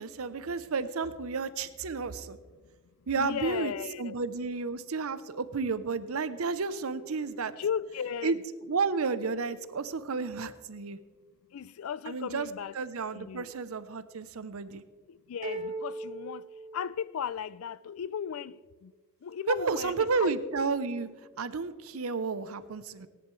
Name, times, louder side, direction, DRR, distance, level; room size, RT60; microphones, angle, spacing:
voice 1, 0.0-2.4 3.1-3.7 4.0-7.5 8.2-8.4 8.7-11.0 12.1-12.5 12.7-14.8 19.5-21.1 21.4-23.1, right 4 dB, 80° right, 0.7 m, -31 dB
voice 2, 3.2-4.2 7.6-8.4 11.5-12.8 13.1-13.5 15.3-16.4 16.7-18.6 18.8-18.9 19.2-20.4, left 7 dB, 75° left, 0.4 m, -35 dB
sound 1, 15.4-17.4, right 1 dB, 35° right, 1.9 m, -38 dB
18.0 x 10.5 x 3.2 m
head